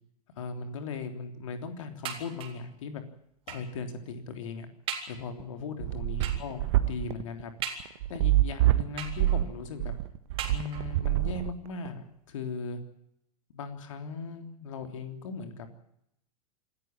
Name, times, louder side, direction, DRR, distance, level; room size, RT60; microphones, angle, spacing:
voice 1, 0.4-3.0 3.5-4.7 5.1-7.5 8.1-10.0 10.5-12.8 13.5-15.7, left 4 dB, 55° left, 7 dB, 3.4 m, -38 dB
sound 1, 2.0-2.7 3.5-3.8 4.3-4.4 4.9-5.2 6.2-6.6 7.6-8.2 9.0-9.6 10.4-11.1 11.9-12.0 12.3-12.4, right 7 dB, 30° right, 3.9 m, -39 dB
sound 2, 5.3-11.9, right 15 dB, 45° right, 1.6 m, -26 dB
26.5 x 14.5 x 8.9 m, 0.77 s
figure-of-eight pair, 95°, 19 cm